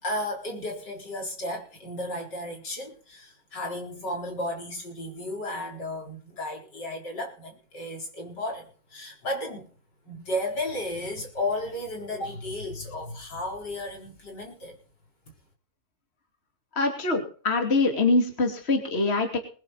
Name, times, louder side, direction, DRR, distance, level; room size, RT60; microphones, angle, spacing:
voice 1, 0.0-9.7 10.1-14.8, left 1 dB, 70° left, 1 dB, 4.9 m, -34 dB
voice 2, 16.8-19.4, left 3 dB, 35° left, 3 dB, 3.0 m, -24 dB
21.5 x 10.0 x 4.1 m, 0.42 s
omnidirectional pair, 1.9 m